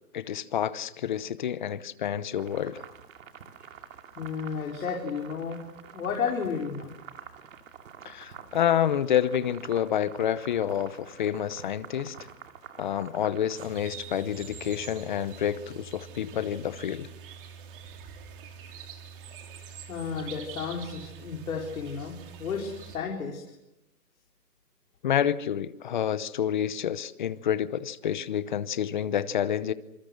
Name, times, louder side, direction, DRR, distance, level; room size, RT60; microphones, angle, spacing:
voice 1, 0.1-2.8 8.0-12.1 12.8-17.1 25.0-29.7, left 9 dB, 30° left, 15 dB, 0.8 m, -28 dB
sound 1, 2.4-13.6, right 7 dB, 55° right, 2.7 m, -47 dB
voice 2, 4.2-5.6 5.9-6.9 19.6-23.4, left 6 dB, 60° left, 0 dB, 4.5 m, -33 dB
sound 2, 13.6-23.0, right 7 dB, 35° right, 2.9 m, -45 dB
26.5 x 25.5 x 6.6 m, 0.92 s
hypercardioid pair, 170°, 48 cm